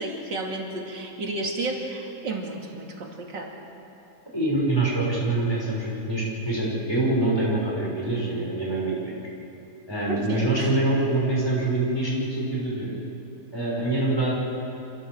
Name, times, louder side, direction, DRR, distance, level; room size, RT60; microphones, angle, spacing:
voice 1, 0.0-3.5 10.1-10.7, right 2 dB, 90° right, 1 dB, 3.1 m, -32 dB
voice 2, 4.3-9.2 9.9-13.0 13.5-14.3, right 2 dB, 15° left, -6 dB, 5.9 m, -25 dB
26.5 x 15.5 x 7.7 m, 2.9 s
omnidirectional pair, 1.9 m